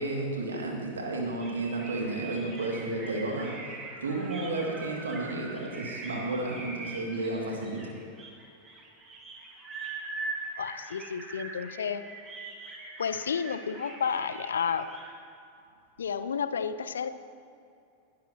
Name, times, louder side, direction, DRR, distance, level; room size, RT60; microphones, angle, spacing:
voice 1, 0.0-3.5 4.0-7.9, right 2 dB, 70° right, -1 dB, 2.5 m, -32 dB
sound 1, 1.4-15.1, right 3 dB, 25° right, 2.1 m, -42 dB
voice 2, 10.6-12.0 13.0-14.9 16.0-17.1, left 6 dB, 65° left, 12 dB, 0.6 m, -31 dB
19.5 x 12.5 x 3.0 m, 2.6 s
figure-of-eight pair, 90°, 0 cm